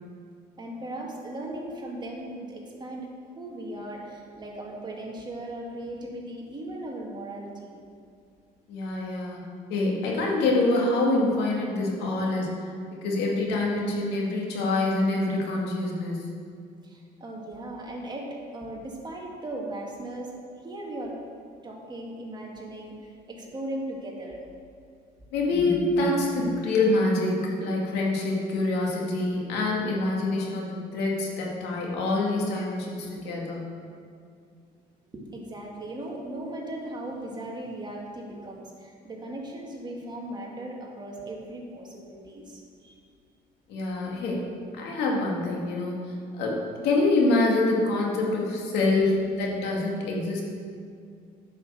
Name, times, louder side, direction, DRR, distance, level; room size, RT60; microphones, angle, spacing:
voice 1, 0.6-3.1 3.4-7.8 16.8-20.3 20.6-21.2 21.6-24.4 35.1-43.0 49.1-49.2, right 1 dB, 25° right, -1 dB, 1.9 m, -37 dB
voice 2, 8.7-9.4 9.7-12.6 13.0-16.3 25.3-33.7 43.7-44.4 44.8-46.0 46.3-46.6 46.8-50.4, left 2 dB, 85° left, -2 dB, 2.2 m, -26 dB
10.0 x 5.9 x 6.6 m, 2.3 s
cardioid pair, 110°, 17 cm